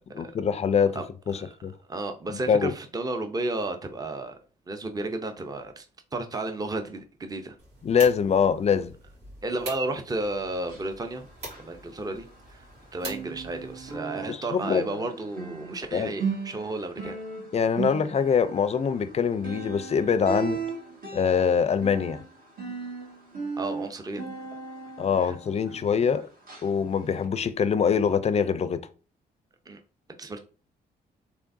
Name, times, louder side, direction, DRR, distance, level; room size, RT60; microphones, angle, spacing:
voice 1, 0.1-1.0 1.3-1.7 2.5-2.7 7.8-8.9 14.3-14.8 15.9-16.1 17.5-20.6 21.1-22.2 25.0-26.2 26.6-28.8, left 6 dB, 40° left, 0.4 m, -24 dB
voice 2, 1.9-4.4 4.7-5.9 6.1-7.6 9.4-11.2 11.6-12.7 12.9-17.2 23.6-24.2 25.2-25.4 26.1-26.2 29.7-29.8 30.2-30.4, right 2 dB, 20° right, 0.6 m, -33 dB
sound 1, 7.6-14.0, right 1 dB, 90° right, 2.1 m, -45 dB
sound 2, 10.6-12.7 13.0-26.1 26.5-26.7 27.2-27.3, right 5 dB, 55° right, 1.6 m, -37 dB
3.6 x 3.4 x 2.6 m
cardioid pair, 75°, 17 cm